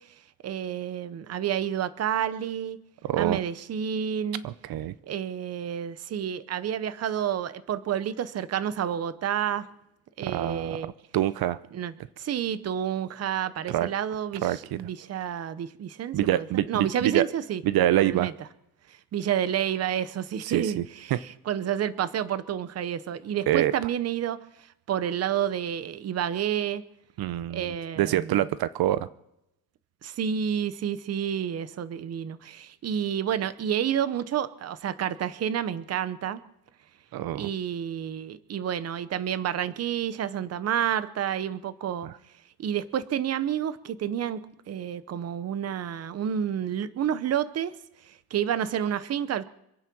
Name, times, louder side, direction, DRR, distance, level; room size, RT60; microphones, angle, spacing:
voice 1, 0.4-2.8 3.2-4.4 5.1-9.7 10.2-10.9 11.7-17.6 18.0-18.3 19.1-24.4 24.9-26.8 27.5-28.5 30.0-36.4 37.3-42.1 42.6-44.4 44.7-47.7 48.1-49.4, right 9 dB, 45° right, 15 dB, 0.8 m, -29 dB
voice 2, 3.0-3.4 4.4-4.9 10.3-10.8 11.1-11.6 13.7-13.9 14.4-14.6 16.1-17.3 17.6-18.3 20.4-20.8 21.1-21.2 23.5-23.7 27.2-29.1 37.1-37.5 42.0-42.1, right 13 dB, 75° right, 16 dB, 0.7 m, -25 dB
26.0 x 8.9 x 6.1 m, 0.83 s
cardioid pair, 170°, 36 cm